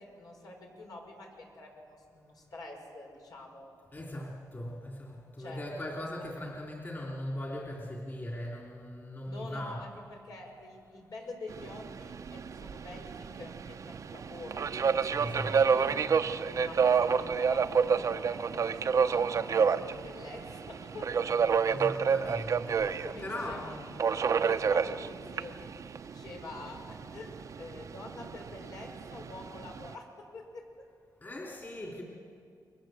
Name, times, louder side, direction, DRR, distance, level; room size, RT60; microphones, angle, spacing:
voice 1, 0.0-3.7 5.4-5.6 5.9-6.1 9.3-14.7 15.2-19.5 20.0-21.1 21.7-21.9 23.0-23.7 24.1-25.7 26.0-30.6, left 2 dB, 70° left, 0 dB, 6.1 m, -46 dB
voice 2, 3.9-9.9 15.1-16.2 21.7-24.0 31.2-32.0, left 1 dB, 30° left, -1 dB, 3.3 m, -40 dB
Subway metro underground, 11.5-29.9, right 6 dB, 50° right, 0.7 m, -30 dB
28.5 x 23.0 x 7.8 m, 2.4 s
wide cardioid pair, 125°, 7 cm